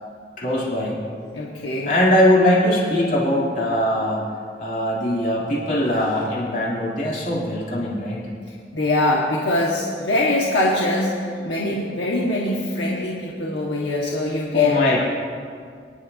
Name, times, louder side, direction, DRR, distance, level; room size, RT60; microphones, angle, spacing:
voice 1, 0.4-1.0 1.9-4.3 4.6-8.2 14.5-15.0, left 1 dB, 50° left, -5 dB, 2.8 m, -20 dB
voice 2, 1.3-2.0 8.5-14.9, left 1 dB, 75° left, -4 dB, 1.5 m, -23 dB
24.5 x 11.0 x 2.7 m, 2.2 s
head